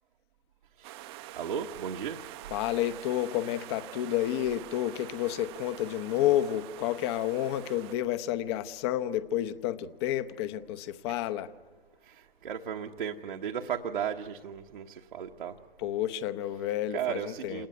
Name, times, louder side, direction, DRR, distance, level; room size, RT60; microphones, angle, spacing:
sound 1, 0.8-8.0, right 15 dB, 25° right, 0.7 m, -46 dB
voice 1, 1.4-2.2 11.1-11.2 12.1-15.6 16.9-17.7, right 8 dB, 60° right, 2 dB, 1.1 m, -35 dB
voice 2, 2.5-11.5 15.8-17.7, left 12 dB, 30° left, 14 dB, 0.8 m, -30 dB
27.5 x 19.0 x 9.5 m, 1.4 s
figure-of-eight pair, 115°, 29 cm